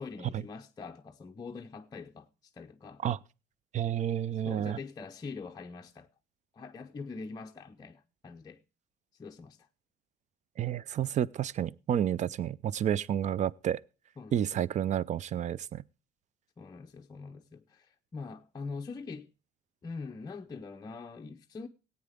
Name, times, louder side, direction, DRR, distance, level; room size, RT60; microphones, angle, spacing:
voice 1, 0.0-3.0 4.4-6.1 6.5-8.6 9.2-9.7 14.2-14.6 16.6-19.3 19.8-21.7, left 4 dB, 25° left, 0.6 m, -43 dB
voice 2, 3.7-4.8 10.6-13.8 14.3-15.8, right 10 dB, 45° right, 0.5 m, -30 dB
17.0 x 8.8 x 3.5 m
cardioid pair, 110°, 17 cm